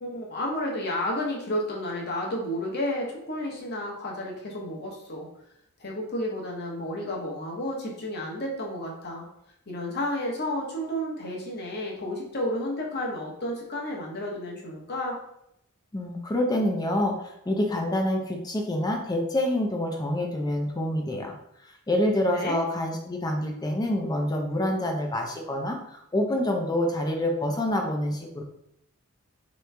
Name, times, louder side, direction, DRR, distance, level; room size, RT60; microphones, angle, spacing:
voice 1, 0.0-5.3 5.8-9.3 9.7-15.2 22.3-22.6, left 1 dB, 50° left, -1 dB, 1.0 m, -31 dB
voice 2, 15.9-21.4 21.6-28.4, left 1 dB, 20° left, 2 dB, 0.5 m, -27 dB
3.7 x 3.1 x 3.3 m, 0.78 s
head